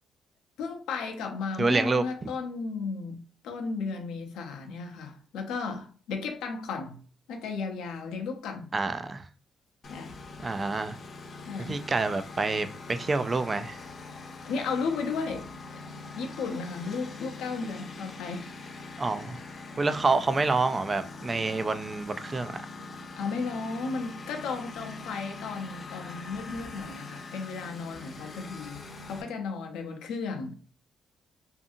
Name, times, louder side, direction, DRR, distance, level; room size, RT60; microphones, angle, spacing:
voice 1, 0.6-3.2 3.4-7.0 7.3-8.7 9.9-10.1 11.5-11.8 14.4-15.8 16.2-18.5 23.2-30.5, left 4 dB, 90° left, 0.6 m, -34 dB
voice 2, 1.6-2.0 8.7-9.3 10.4-11.0 11.7-13.8 19.0-19.4 19.8-22.6, right 3 dB, 30° right, 0.3 m, -27 dB
Engine, 9.8-29.2, left 3 dB, 45° left, 0.6 m, -43 dB
2.6 x 2.5 x 2.5 m
cardioid pair, 90°, 0 cm